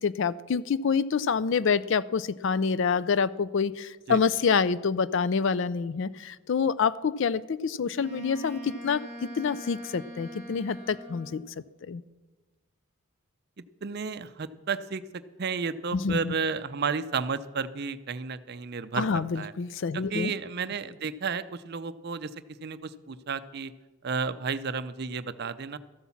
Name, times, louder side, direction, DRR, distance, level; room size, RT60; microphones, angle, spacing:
voice 1, 0.0-9.0 9.4-11.4 11.9-12.0 15.9-16.3 19.0-20.3, left 5 dB, 55° left, 18 dB, 0.4 m, -27 dB
Wind instrument woodwind instrument, 7.9-11.5, equal, 15° right, 2.7 m, -42 dB
voice 2, 13.8-19.5 19.9-22.3 22.6-23.7 24.0-25.8, right 5 dB, 45° right, 13 dB, 0.5 m, -32 dB
13.5 x 8.4 x 7.1 m, 1.2 s
head